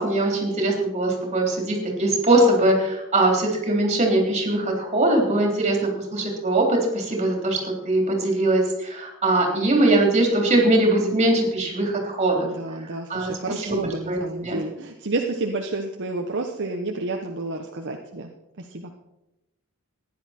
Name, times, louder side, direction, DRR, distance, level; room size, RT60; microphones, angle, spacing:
voice 1, 0.0-12.5 13.1-13.3 13.6-13.8 14.1-14.6, right 1 dB, 30° right, 1 dB, 3.6 m, -21 dB
voice 2, 12.4-18.3 18.6-18.9, right 2 dB, 55° right, 2 dB, 1.1 m, -30 dB
15.0 x 10.5 x 4.4 m, 0.92 s
head